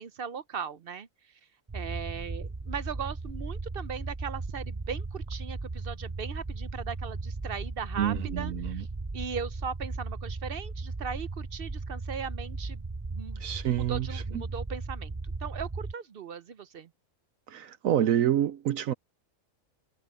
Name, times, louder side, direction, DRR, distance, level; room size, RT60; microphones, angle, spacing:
voice 1, 0.0-1.4 1.7-8.9 9.1-12.8 13.1-16.9, right 6 dB, 55° right, 0.7 m, -38 dB
sound 1, 1.7-15.9, right 3 dB, 20° right, 0.5 m, -36 dB
voice 2, 8.0-8.8 13.4-14.4 17.5-18.9, right 10 dB, 75° right, 1.1 m, -28 dB
omnidirectional pair, 1.4 m